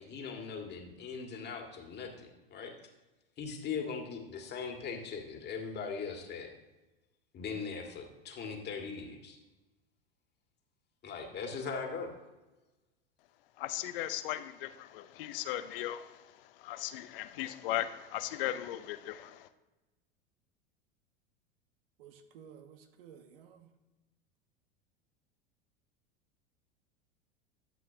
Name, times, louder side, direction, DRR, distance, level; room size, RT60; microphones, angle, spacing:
voice 1, 0.0-2.7 3.4-6.5 7.3-9.4 11.0-12.2, left 5 dB, 35° left, 2 dB, 2.0 m, -40 dB
voice 2, 13.6-16.3 16.6-19.5, left 13 dB, 65° left, 12 dB, 0.7 m, -37 dB
voice 3, 22.0-23.7, right 8 dB, 70° right, 7 dB, 1.3 m, -54 dB
12.5 x 7.7 x 2.8 m, 1.1 s
hypercardioid pair, 90°, 30 cm